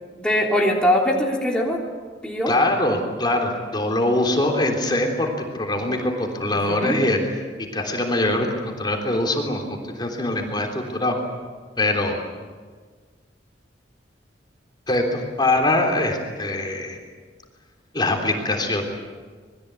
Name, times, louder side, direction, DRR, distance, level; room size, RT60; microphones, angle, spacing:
voice 1, 0.2-1.8 2.2-2.5 6.5-7.0, equal, 5° left, -2 dB, 3.4 m, -21 dB
voice 2, 2.5-7.2 7.7-11.2 11.8-12.2 14.9-17.0 17.9-18.8, left 1 dB, 25° left, 2 dB, 3.4 m, -23 dB
27.0 x 21.5 x 8.3 m, 1.5 s
head